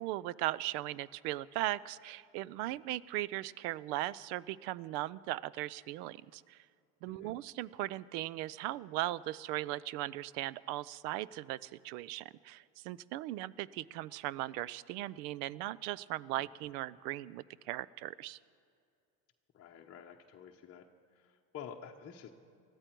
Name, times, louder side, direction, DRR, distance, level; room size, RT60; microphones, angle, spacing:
voice 1, 0.0-6.6 7.0-18.4, right 16 dB, 65° right, 21 dB, 0.6 m, -38 dB
voice 2, 19.5-20.9 21.1-22.3, left 7 dB, 30° left, -1 dB, 0.9 m, -50 dB
20.5 x 14.0 x 4.6 m, 2.4 s
supercardioid pair, 110°, 50 cm